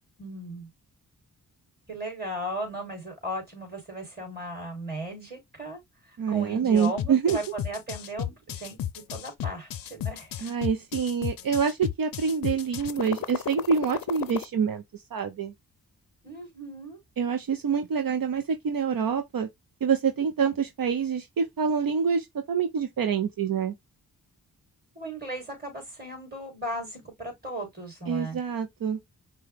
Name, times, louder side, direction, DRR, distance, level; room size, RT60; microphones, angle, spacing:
voice 1, 0.2-0.7 1.9-5.8 6.1-10.3 16.2-17.0 25.0-28.4, right 1 dB, 25° right, 3.5 m, -36 dB
voice 2, 6.2-7.4 10.4-15.5 17.2-19.5 19.8-23.7 28.1-29.0, right 6 dB, 60° right, 0.7 m, -26 dB
sound 1, 6.7-14.4, left 10 dB, 60° left, 0.5 m, -33 dB
5.4 x 2.3 x 3.3 m
cardioid pair, 55°, 39 cm